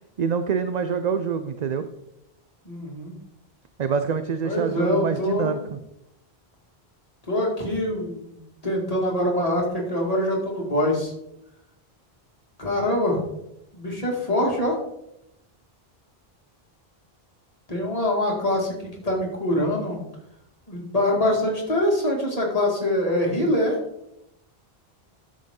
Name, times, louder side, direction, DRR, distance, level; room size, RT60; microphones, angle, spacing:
voice 1, 0.2-1.9 3.8-5.8, right 6 dB, 50° right, 10 dB, 0.6 m, -26 dB
voice 2, 2.7-3.2 4.4-5.6 7.3-11.1 12.6-13.2 13.7-14.8 17.7-20.0 20.7-23.8, left 1 dB, 35° left, -2 dB, 2.4 m, -24 dB
12.5 x 6.5 x 3.7 m, 0.84 s
omnidirectional pair, 1.0 m